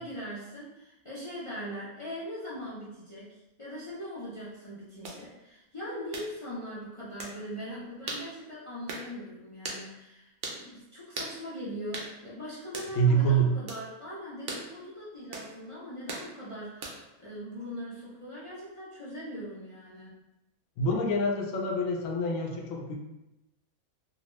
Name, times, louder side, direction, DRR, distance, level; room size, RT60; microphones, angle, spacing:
voice 1, 0.0-20.2, equal, 40° left, -9 dB, 0.4 m, -41 dB
sound 1, 5.0-5.2 6.1-6.3 7.2-7.4 8.1-8.3 8.9-9.1 9.6-9.8 10.4-10.6 11.1-11.3 11.9-12.1 12.7-12.9 13.7-13.8 14.5-14.7 15.3-15.5 16.1-16.3 16.8-17.1, right 3 dB, 65° right, 0.5 m, -38 dB
voice 2, 12.9-13.6 20.8-23.0, right 3 dB, 70° left, 1 dB, 0.9 m, -26 dB
2.6 x 2.2 x 3.0 m, 0.93 s
omnidirectional pair, 1.5 m